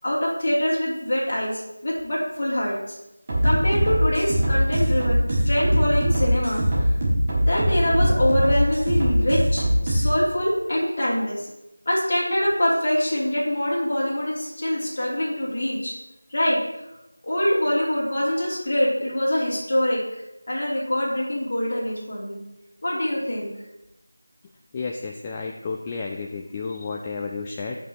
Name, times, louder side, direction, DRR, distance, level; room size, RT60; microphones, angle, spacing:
voice 1, 0.0-2.9 3.4-6.9 7.4-11.5 11.8-15.9 16.3-16.8 17.2-20.0 20.5-22.4 22.8-23.5, left 1 dB, 40° left, -5 dB, 2.9 m, -24 dB
sound 1, 3.3-10.0, equal, 25° right, 1.8 m, -22 dB
voice 2, 24.7-27.8, left 4 dB, 15° left, 1 dB, 0.4 m, -31 dB
16.0 x 5.7 x 3.0 m, 0.93 s
figure-of-eight pair, 170°, 0 cm